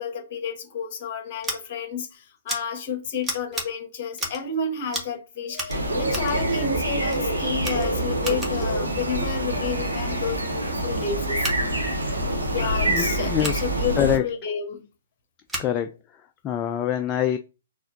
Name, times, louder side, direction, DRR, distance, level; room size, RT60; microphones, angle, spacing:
voice 1, 0.0-11.5 12.5-14.8, left 5 dB, 40° left, 1.3 m, -31 dB
Scissors, 1.4-1.6 2.5-2.6 3.2-3.7 4.1-4.5 4.9-5.2 5.5-6.4 7.1-7.2 7.6-8.7 11.3-11.6 13.4-13.6 15.5-15.7, right 1 dB, 10° right, 1.2 m, -33 dB
sound 1, 5.7-14.2, right 1 dB, 80° right, 1.1 m, -26 dB
voice 2, 12.9-13.6 13.9-14.2 15.6-17.4, left 9 dB, 20° left, 0.3 m, -25 dB
4.2 x 2.5 x 3.9 m
figure-of-eight pair, 120°, 0 cm